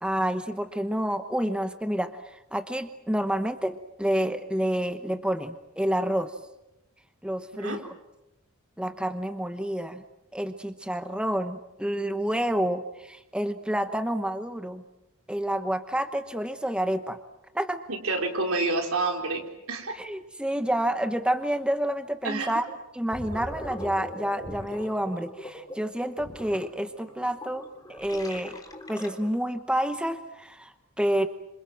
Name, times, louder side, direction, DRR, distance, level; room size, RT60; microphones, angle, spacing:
voice 1, 0.0-6.3 7.2-7.8 8.8-10.0 10.3-14.8 15.3-17.2 17.5-17.8 19.9-22.6 22.9-28.6 28.9-31.3, right 1 dB, 5° right, 8 dB, 1.0 m, -29 dB
voice 2, 17.9-19.9 22.2-22.5, right 3 dB, 70° right, 3 dB, 4.4 m, -28 dB
Gurgling, 22.4-22.6 23.0-29.4, left 1 dB, 15° left, 3.3 m, -41 dB
28.0 x 27.0 x 7.5 m, 0.92 s
head